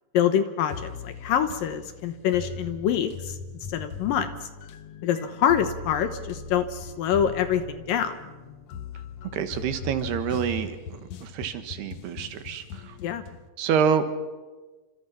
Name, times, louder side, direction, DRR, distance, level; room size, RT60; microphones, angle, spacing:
voice 1, 0.1-3.4 3.7-4.3 5.0-8.2 13.0-13.2, left 9 dB, 70° left, 9 dB, 2.6 m, -25 dB
sound 1, 0.7-13.5, left 5 dB, 85° left, 1.5 m, -40 dB
voice 2, 9.3-13.0 13.6-14.1, right 7 dB, 80° right, 9 dB, 3.5 m, -27 dB
28.5 x 26.5 x 5.8 m, 1.2 s
omnidirectional pair, 4.7 m